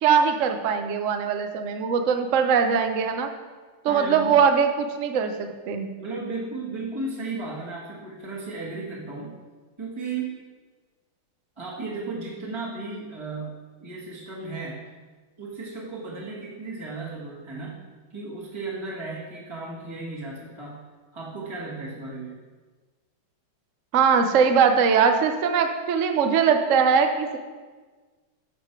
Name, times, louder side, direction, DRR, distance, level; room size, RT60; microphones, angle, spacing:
voice 1, 0.0-3.3 3.8-5.9 23.9-27.4, right 6 dB, 60° right, 6 dB, 0.8 m, -21 dB
voice 2, 3.9-4.3 6.0-9.4 9.8-10.4 11.6-13.5 13.8-14.9 15.4-17.8 18.1-20.8 21.1-22.4, right 3 dB, 15° right, -6 dB, 1.4 m, -35 dB
11.5 x 6.8 x 4.6 m, 1.4 s
omnidirectional pair, 2.4 m